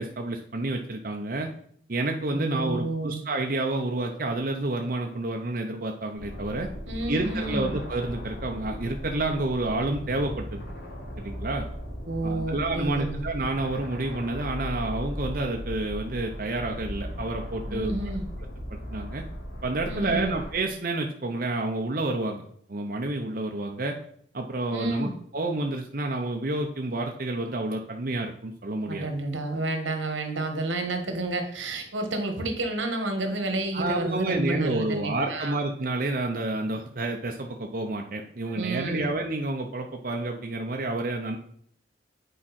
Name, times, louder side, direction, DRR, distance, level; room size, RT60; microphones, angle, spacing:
voice 1, 0.0-1.5 1.9-6.7 7.1-10.6 11.2-11.6 12.2-17.9 18.7-19.2 19.6-22.4 22.7-24.0 24.3-29.1 33.7-41.4, right 2 dB, 50° right, 2 dB, 0.7 m, -29 dB
voice 2, 2.3-3.2 6.9-7.7 12.0-13.2 17.7-18.2 19.9-20.4 24.7-25.1 28.9-35.5 38.4-39.1, right 2 dB, 85° right, 5 dB, 1.5 m, -30 dB
sound 1, 6.1-20.5, equal, 80° left, 3.5 m, -37 dB
8.8 x 5.0 x 4.2 m, 0.63 s
head